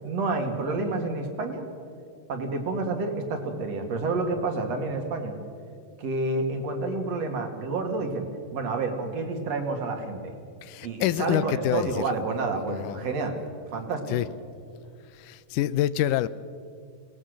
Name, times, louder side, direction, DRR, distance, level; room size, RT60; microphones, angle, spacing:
voice 1, 0.0-1.6 2.3-5.3 6.0-8.3 8.5-10.3 10.8-13.4 13.7-14.2, right 3 dB, 60° right, 4 dB, 2.9 m, -29 dB
voice 2, 10.6-12.0 12.7-13.1 14.1-14.3 15.1-16.3, left 13 dB, 90° left, 16 dB, 2.2 m, -27 dB
23.5 x 18.5 x 6.4 m, 2.4 s
omnidirectional pair, 3.6 m